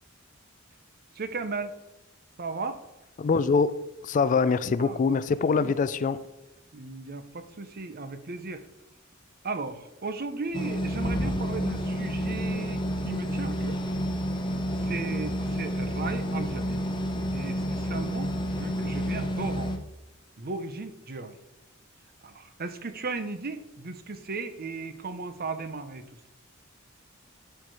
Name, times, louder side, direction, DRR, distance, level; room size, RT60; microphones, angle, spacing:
voice 1, 1.1-1.8 2.4-2.8 4.3-4.5 4.8-5.2 5.6-6.1 6.7-8.6 9.4-13.8 14.8-16.8 17.3-19.7 20.4-21.4 22.2-26.0, right 3 dB, 45° right, 10 dB, 0.8 m, -36 dB
voice 2, 3.2-3.8 4.0-6.2, left 5 dB, 40° left, 15 dB, 0.3 m, -24 dB
sound 1, 10.5-19.8, equal, 25° left, 0.9 m, -30 dB
12.0 x 4.6 x 4.8 m, 0.96 s
head